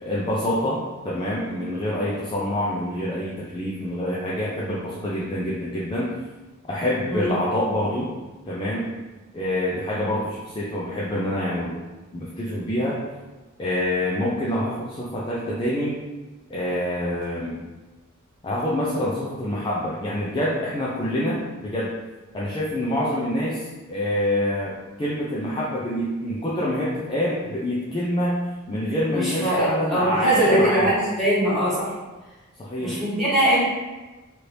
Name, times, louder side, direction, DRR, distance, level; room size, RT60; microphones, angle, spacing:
voice 1, 0.0-6.1 6.7-8.1 8.5-8.9 9.3-11.7 12.1-13.0 13.6-16.0 16.5-17.6 18.4-21.9 22.3-28.4 28.7-31.0 32.6-33.0, left 1 dB, 20° left, -6 dB, 0.4 m, -26 dB
voice 2, 29.1-31.9 32.8-33.6, right 1 dB, ahead, -12 dB, 1.5 m, -21 dB
2.9 x 2.6 x 3.2 m, 1.2 s
head